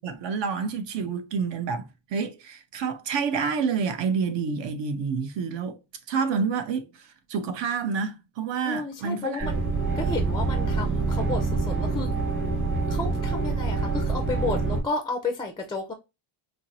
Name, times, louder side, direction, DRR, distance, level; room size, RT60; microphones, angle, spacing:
voice 1, 0.0-5.8 6.1-9.5, right 5 dB, 65° right, 0.8 m, -28 dB
voice 2, 8.6-9.6 9.9-12.1 12.9-15.9, left 3 dB, 10° left, 0.3 m, -32 dB
sound 1, 9.4-14.8, right 3 dB, 25° right, 1.4 m, -26 dB
4.4 x 2.0 x 2.6 m
cardioid pair, 150°, 48 cm